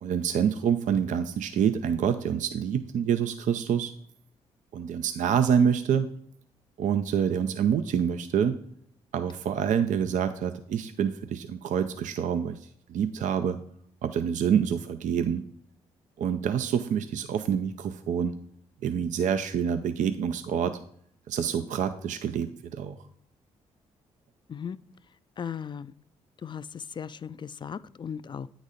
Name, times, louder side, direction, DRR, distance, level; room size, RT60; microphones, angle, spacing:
voice 1, 0.0-3.9 4.7-6.1 6.8-8.6 9.1-13.6 14.0-15.4 16.2-18.4 18.8-20.8 21.3-23.0, right 8 dB, 65° right, 9 dB, 0.5 m, -27 dB
voice 2, 25.4-25.9 26.4-28.5, left 7 dB, 35° left, 16 dB, 0.3 m, -37 dB
8.8 x 4.0 x 4.9 m, 0.64 s
supercardioid pair, 50°, 14 cm